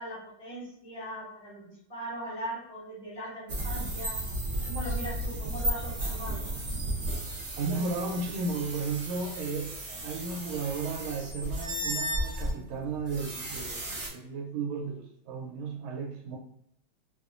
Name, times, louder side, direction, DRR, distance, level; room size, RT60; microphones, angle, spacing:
voice 1, 0.0-4.2 4.7-6.4, equal, 80° left, -8 dB, 0.3 m, -40 dB
sound 1, 3.5-14.1, right 1 dB, 65° right, 0.7 m, -34 dB
voice 2, 7.6-16.4, right 4 dB, 85° right, 0 dB, 1.4 m, -34 dB
3.4 x 2.0 x 2.5 m, 0.75 s
omnidirectional pair, 2.3 m